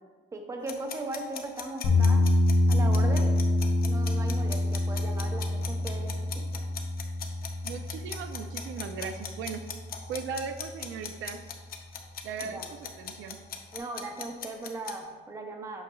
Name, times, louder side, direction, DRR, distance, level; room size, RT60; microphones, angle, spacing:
voice 1, 0.3-2.2 2.7-3.3 3.9-6.4 12.4-12.7 13.7-15.8, right 2 dB, 15° right, 3 dB, 0.6 m, -38 dB
sound 1, 0.7-15.0, left 7 dB, 50° left, 0.6 m, -39 dB
sound 2, 1.8-9.9, left 2 dB, 80° left, 1.7 m, -26 dB
voice 2, 7.6-9.6 10.1-11.4 12.2-13.4, right 6 dB, 75° right, 8 dB, 0.5 m, -37 dB
7.7 x 5.8 x 2.3 m, 1.4 s
cardioid pair, 175°, 20 cm